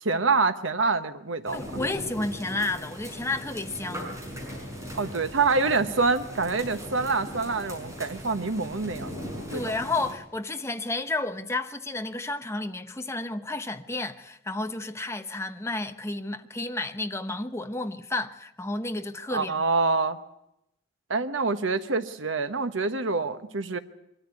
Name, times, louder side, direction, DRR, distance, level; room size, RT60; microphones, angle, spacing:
voice 1, 0.0-1.6 4.9-9.2 9.5-9.7 19.3-20.2 21.1-23.8, right 4 dB, 75° right, 1.2 m, -26 dB
voice 2, 1.5-4.2 9.5-19.5, left 2 dB, 15° left, 0.9 m, -31 dB
sound 1, 1.5-10.1, equal, 15° right, 6.2 m, -39 dB
23.5 x 13.5 x 9.6 m
head